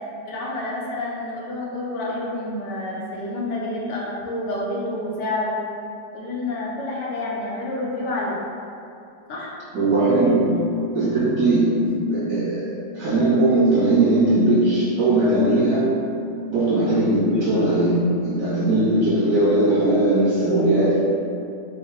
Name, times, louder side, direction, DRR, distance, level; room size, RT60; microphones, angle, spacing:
voice 1, 0.2-5.6 6.1-8.4 9.3-9.5 11.0-11.2 16.4-16.6, left 2 dB, 75° left, -4 dB, 1.2 m, -29 dB
voice 2, 9.7-12.6 12.9-15.9 16.5-21.1, right 2 dB, 80° right, -11 dB, 2.1 m, -19 dB
5.5 x 2.0 x 2.8 m, 2.6 s
omnidirectional pair, 1.9 m